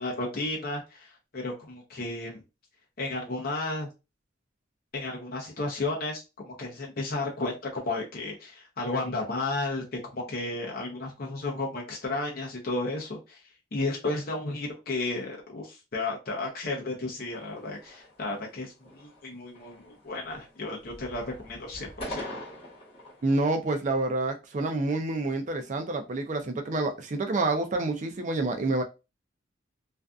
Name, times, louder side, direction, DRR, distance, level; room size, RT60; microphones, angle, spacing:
voice 1, 0.0-2.4 3.0-3.9 4.9-13.4 13.7-22.3, left 2 dB, 50° left, 0.6 m, -33 dB
sound 1, 17.3-18.4 18.8-19.3 19.5-20.5 20.8-23.3, left 1 dB, 30° left, 1.1 m, -43 dB
voice 2, 23.2-28.8, right 2 dB, 40° right, 0.4 m, -28 dB
2.5 x 2.4 x 2.3 m
head